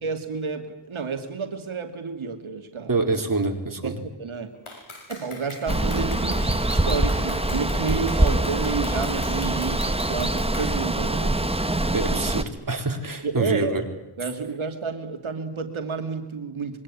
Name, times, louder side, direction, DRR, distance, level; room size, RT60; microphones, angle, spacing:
voice 1, 0.0-2.9 3.8-4.5 5.1-11.3 12.1-12.2 13.2-13.8 14.2-16.8, right 5 dB, 75° right, 5 dB, 2.7 m, -30 dB
voice 2, 2.9-4.0 11.9-13.8, right 3 dB, 40° right, 4 dB, 4.4 m, -26 dB
Clapping, 4.7-10.8, left 3 dB, 85° left, 7.3 m, -42 dB
Water, 5.7-12.4, right 1 dB, 10° right, 1.6 m, -24 dB
25.5 x 23.0 x 10.0 m, 0.89 s
wide cardioid pair, 110°, 48 cm